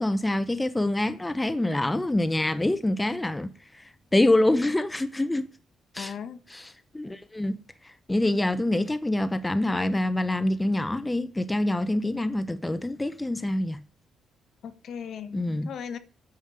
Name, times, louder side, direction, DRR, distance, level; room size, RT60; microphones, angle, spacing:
voice 1, 0.0-3.5 3.7-5.5 5.9-6.1 6.5-13.8 15.3-15.7, left 1 dB, 10° left, 0.8 m, -26 dB
voice 2, 6.0-6.4 14.6-16.0, left 7 dB, 60° left, 1.3 m, -37 dB
9.5 x 7.2 x 8.9 m
cardioid pair, 120°, 0 cm